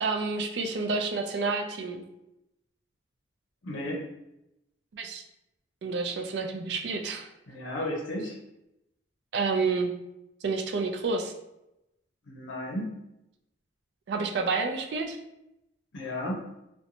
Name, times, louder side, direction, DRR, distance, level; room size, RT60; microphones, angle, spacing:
voice 1, 0.0-2.0 4.9-5.2 5.8-7.3 9.3-9.9 10.4-11.3 14.1-15.2, right 4 dB, 60° right, 4 dB, 0.3 m, -29 dB
voice 2, 3.6-4.0 7.5-8.4 12.3-12.9 15.9-16.4, left 1 dB, 85° left, -2 dB, 0.6 m, -33 dB
2.6 x 2.1 x 2.8 m, 0.87 s
head